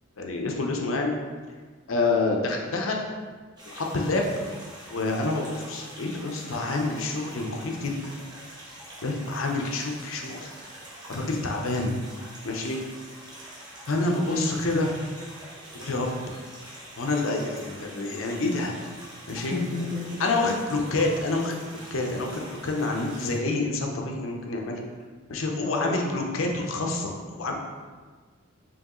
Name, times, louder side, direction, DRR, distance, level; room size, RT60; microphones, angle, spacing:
voice 1, 0.2-1.1 1.9-3.1 3.7-4.3 4.9-7.9 9.0-10.4 11.1-12.0 12.4-12.8 13.9-14.9 15.7-16.1 17.0-18.8 19.3-19.5 20.2-21.6 21.9-24.8 25.3-27.5, left 2 dB, 80° left, 1 dB, 0.6 m, -27 dB
sound 1, 3.6-23.4, right 1 dB, 20° right, 0.9 m, -45 dB
voice 2, 19.5-20.2 25.6-26.0, left 2 dB, 35° left, -4 dB, 0.6 m, -30 dB
4.6 x 2.9 x 3.0 m, 1.5 s
head